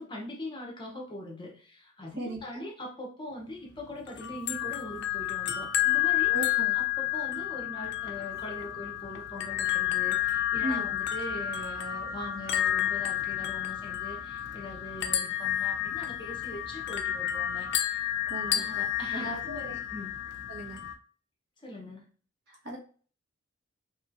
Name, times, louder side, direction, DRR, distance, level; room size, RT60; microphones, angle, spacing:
voice 1, 0.0-6.3 6.7-18.1 18.5-20.1 21.6-22.1, left 1 dB, 25° left, 0 dB, 0.7 m, -42 dB
voice 2, 2.2-2.7 6.3-6.8 10.6-10.9 18.3-18.9 19.1-19.7 20.5-20.8 22.5-22.8, right 1 dB, 55° right, -1 dB, 0.9 m, -37 dB
sound 1, 4.1-20.9, left 12 dB, 55° left, 0.3 m, -30 dB
3.0 x 2.9 x 2.4 m, 0.41 s
head